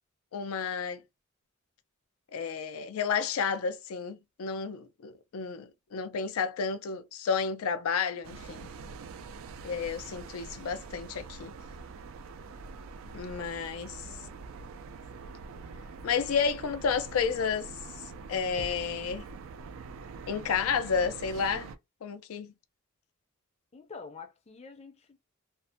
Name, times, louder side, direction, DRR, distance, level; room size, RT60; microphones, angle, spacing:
voice 1, 0.3-1.0 2.3-8.7 9.6-11.5 13.1-14.0 16.0-17.7 18.3-19.2 20.3-21.7 22.0-22.5, left 6 dB, 90° left, 0.4 m, -31 dB
sound 1, 8.2-21.8, right 4 dB, 70° right, 0.3 m, -44 dB
voice 2, 14.0-14.9 23.7-25.2, left 4 dB, 30° left, 0.5 m, -48 dB
2.5 x 2.1 x 2.5 m
head